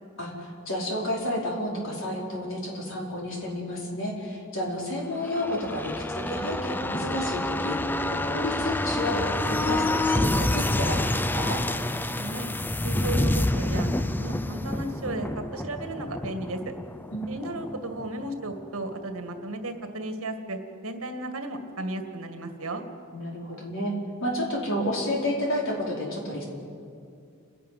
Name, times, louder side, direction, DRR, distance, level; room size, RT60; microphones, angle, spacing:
voice 1, 0.2-7.8 8.1-11.6 17.1-17.3 23.1-23.9 24.2-26.5, left 1 dB, 65° left, -2 dB, 4.9 m, -31 dB
sound 1, 5.1-18.6 18.9-19.0, left 1 dB, 10° left, 0.5 m, -28 dB
voice 2, 12.2-12.5 12.8-16.6 17.3-22.8, right 2 dB, 75° right, 6 dB, 2.1 m, -34 dB
29.5 x 11.0 x 9.4 m, 2.4 s
head